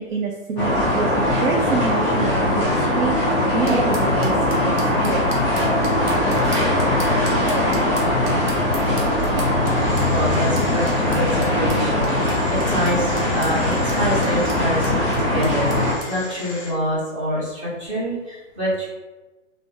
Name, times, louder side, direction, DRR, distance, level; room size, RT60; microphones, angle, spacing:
voice 1, 0.0-4.7 5.0-5.4, right 4 dB, 85° right, 1 dB, 0.6 m, -27 dB
sound 1, 0.6-15.9, left 1 dB, 5° right, 1.1 m, -20 dB
sound 2, 3.7-16.1, right 2 dB, 50° right, 0.8 m, -40 dB
sound 3, 9.1-16.7, left 2 dB, 25° left, 0.5 m, -38 dB
voice 2, 10.1-18.9, equal, 25° right, -8 dB, 1.0 m, -26 dB
2.6 x 2.6 x 3.3 m, 1.1 s
hypercardioid pair, 170°, 38 cm